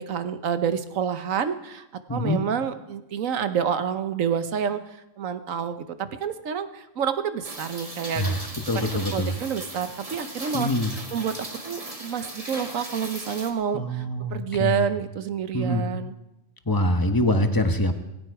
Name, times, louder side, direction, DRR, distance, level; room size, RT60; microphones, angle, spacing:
voice 1, 0.0-8.4 8.7-10.7 11.1-14.0 14.3-16.1, right 7 dB, 80° right, 10 dB, 1.4 m, -28 dB
voice 2, 2.1-2.4 8.1-9.3 10.5-10.9 13.7-14.9 15.5-15.9 16.6-17.9, left 1 dB, 15° left, 7 dB, 1.2 m, -24 dB
Rain, 7.4-13.5, right 2 dB, 25° right, 2.1 m, -37 dB
18.0 x 16.5 x 4.8 m, 0.90 s
omnidirectional pair, 1.4 m